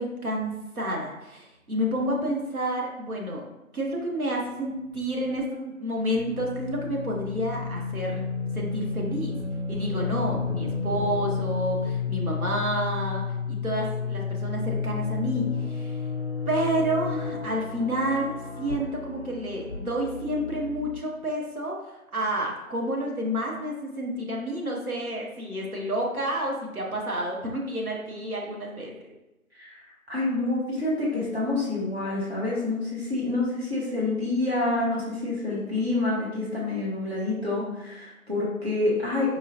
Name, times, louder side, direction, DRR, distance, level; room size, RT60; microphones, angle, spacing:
voice 1, 0.0-3.5 3.7-8.2 8.5-9.3 9.7-16.0 16.5-28.9, equal, 80° right, -1 dB, 1.2 m, -29 dB
sound 1, 4.9-5.4 6.1-21.0, left 5 dB, 50° left, 0.4 m, -32 dB
voice 2, 29.5-39.4, left 2 dB, 45° right, -6 dB, 1.4 m, -27 dB
4.6 x 2.5 x 2.8 m, 0.98 s
figure-of-eight pair, 170°, 43 cm